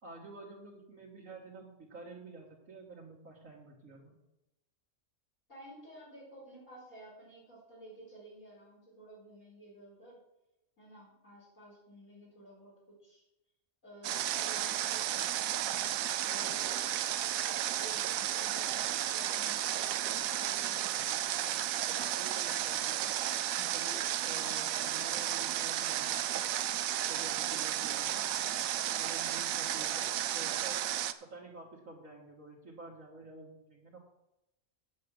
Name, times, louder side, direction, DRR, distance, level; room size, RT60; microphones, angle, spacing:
voice 1, 0.0-4.2 21.9-23.0 23.6-26.5 27.1-28.3 29.0-30.8 31.2-34.0, right 2 dB, 70° right, -5 dB, 2.1 m, -49 dB
voice 2, 5.5-10.2 10.8-13.2 13.8-21.5, right 1 dB, 70° left, -9 dB, 5.2 m, -53 dB
Water, 14.0-31.1, right 11 dB, 85° right, 1.0 m, -33 dB
8.5 x 7.5 x 6.3 m, 0.91 s
omnidirectional pair, 1.4 m